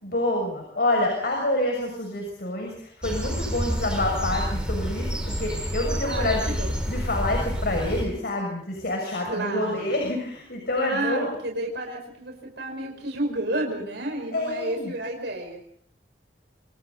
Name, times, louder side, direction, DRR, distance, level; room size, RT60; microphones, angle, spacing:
voice 1, 0.0-6.4 6.9-11.3 14.3-14.9, left 1 dB, 60° left, 1 dB, 6.6 m, -27 dB
sound 1, 3.0-8.0, equal, 5° right, 6.3 m, -28 dB
voice 2, 6.0-6.8 9.2-9.9 10.8-15.6, right 1 dB, 80° right, 2 dB, 5.6 m, -31 dB
27.0 x 27.0 x 4.1 m, 0.64 s
head